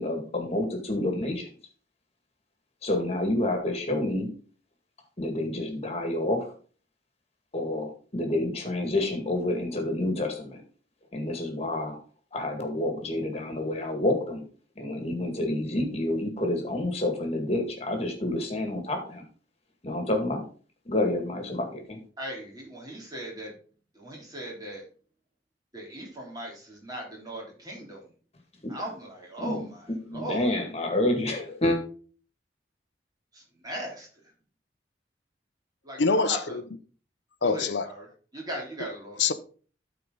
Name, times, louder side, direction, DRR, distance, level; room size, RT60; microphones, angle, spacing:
voice 1, 0.0-1.5 2.8-4.3 5.2-6.5 7.5-10.6 11.1-12.0 12.3-14.4 14.8-19.2 19.8-20.4 20.9-22.0 29.4-29.6 30.1-31.8, left 1 dB, 35° left, 2.0 m, -28 dB
voice 2, 22.2-23.6 23.9-24.8 25.7-28.1 28.7-30.5 33.3-34.1 35.8-36.6 37.4-39.2, right 1 dB, 20° right, 3.3 m, -38 dB
voice 3, 36.0-36.6 37.4-37.9 39.2-39.3, left 4 dB, 80° left, 0.8 m, -24 dB
12.5 x 4.6 x 3.9 m
head